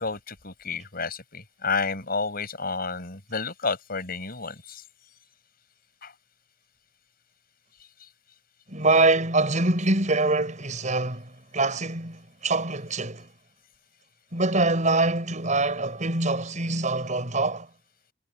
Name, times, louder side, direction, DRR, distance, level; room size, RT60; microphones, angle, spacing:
voice 1, 0.0-4.8 6.0-6.1, left 4 dB, 50° left, 7.0 m, -31 dB
voice 2, 8.7-13.3 14.3-17.7, right 2 dB, 40° right, 6.3 m, -24 dB
head